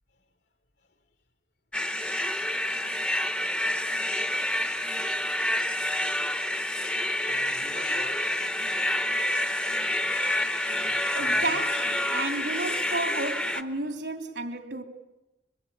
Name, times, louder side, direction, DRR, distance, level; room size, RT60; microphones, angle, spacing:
sound 1, 1.7-13.6, left 1 dB, 5° left, 0.8 m, -28 dB
voice 1, 7.2-8.5 10.1-10.4 10.8-11.7, left 2 dB, 80° left, 3.5 m, -46 dB
voice 2, 11.1-14.8, right 2 dB, 85° right, 3.0 m, -32 dB
25.0 x 22.5 x 8.6 m
head